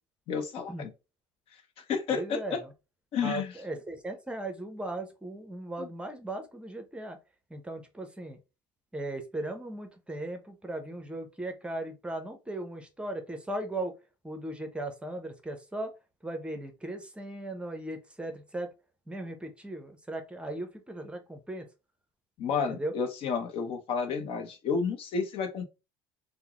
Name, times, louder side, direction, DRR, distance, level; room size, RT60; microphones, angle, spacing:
voice 1, 0.3-0.9 1.8-2.6 3.1-3.5 5.8-5.9 22.4-25.6, left 6 dB, 55° left, 0.8 m, -31 dB
voice 2, 2.1-2.7 3.2-7.2 7.5-8.4 8.9-13.9 14.2-15.9 16.2-18.7 19.1-21.7 22.7-22.9, right 1 dB, 10° right, 0.7 m, -37 dB
3.6 x 2.1 x 2.9 m
supercardioid pair, 95°, 11 cm